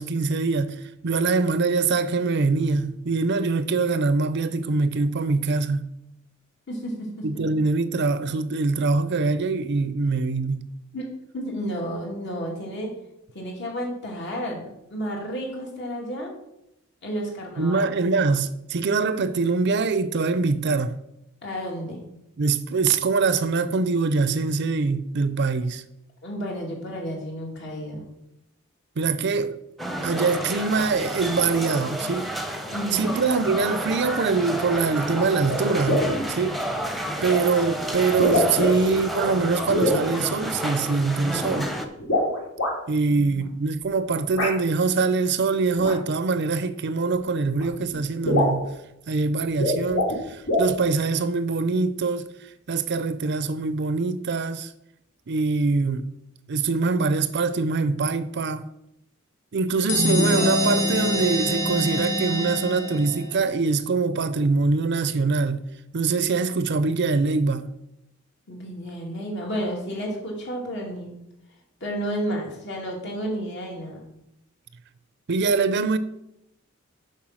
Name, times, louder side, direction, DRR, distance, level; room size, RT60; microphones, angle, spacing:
voice 1, 0.0-5.8 7.2-10.7 17.6-20.9 22.4-25.8 29.0-29.6 30.0-32.3 32.9-36.6 37.2-41.7 42.9-48.7 49.1-52.3 52.7-54.7 55.3-56.1 56.5-58.6 59.5-65.6 65.9-67.7 75.3-76.0, right 4 dB, 60° right, 0.5 m, -23 dB
voice 2, 6.7-7.2 10.9-11.0 11.3-12.9 13.3-14.6 14.9-16.3 17.0-17.9 21.4-22.0 26.2-28.0 32.7-33.2 43.1-43.4 68.5-71.1 71.8-74.0, equal, 60° left, 2.7 m, -31 dB
sound 1, 29.8-41.9, equal, ahead, 0.8 m, -31 dB
sound 2, 35.5-35.6 35.9-36.2 37.3-37.4 38.1-39.0 39.7-40.0 42.0-42.7 44.4-44.5 45.8-45.9 47.1-47.2 47.6-47.7 47.9-48.0 48.2-48.6 49.5-50.2 50.5-50.7, left 1 dB, 80° left, 2.8 m, -23 dB
sound 3, 59.9-63.4, left 1 dB, 40° left, 1.2 m, -24 dB
7.3 x 5.5 x 6.2 m
head